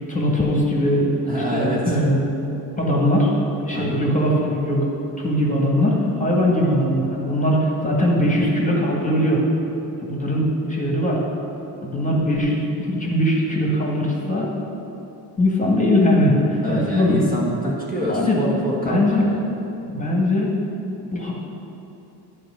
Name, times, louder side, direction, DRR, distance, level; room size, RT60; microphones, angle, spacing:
voice 1, 0.1-1.1 1.5-2.3 2.8-3.3 3.6-4.9 5.2-9.4 10.0-11.2 11.8-14.5 15.4-17.2 18.1-18.4 18.9-19.3 19.9-20.5 21.1-21.3, left 1 dB, 15° left, -3 dB, 2.0 m, -20 dB
voice 2, 1.3-2.1 3.7-4.1 16.6-19.5, equal, 20° right, -5 dB, 1.5 m, -26 dB
9.3 x 4.7 x 6.5 m, 3.0 s
supercardioid pair, 75°, 47 cm